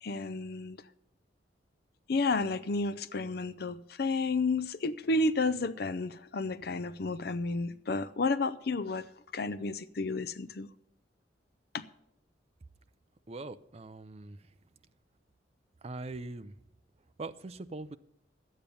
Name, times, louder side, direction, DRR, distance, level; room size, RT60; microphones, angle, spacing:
voice 1, 0.0-0.8 2.1-9.1 9.3-10.7 11.7-11.9, left 3 dB, 55° left, 0.5 m, -31 dB
voice 2, 13.3-14.4 15.8-16.5 17.2-18.0, right 3 dB, 35° right, 0.5 m, -41 dB
11.5 x 8.8 x 6.9 m
head